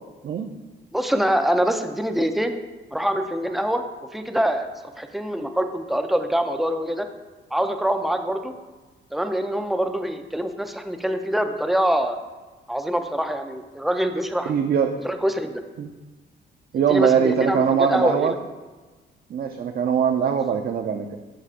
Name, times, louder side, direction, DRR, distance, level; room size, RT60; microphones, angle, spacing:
voice 1, 0.9-2.6 2.9-3.8 4.1-4.7 5.0-7.1 7.5-8.5 9.1-12.2 12.7-14.5 15.0-15.6 16.9-18.4 20.2-20.3, equal, ahead, 6 dB, 0.6 m, -24 dB
voice 2, 14.5-14.9 15.8-15.9 16.7-18.3 19.3-21.2, right 7 dB, 50° right, 4 dB, 0.5 m, -21 dB
12.0 x 4.8 x 2.5 m, 1.3 s
cardioid pair, 90°, 20 cm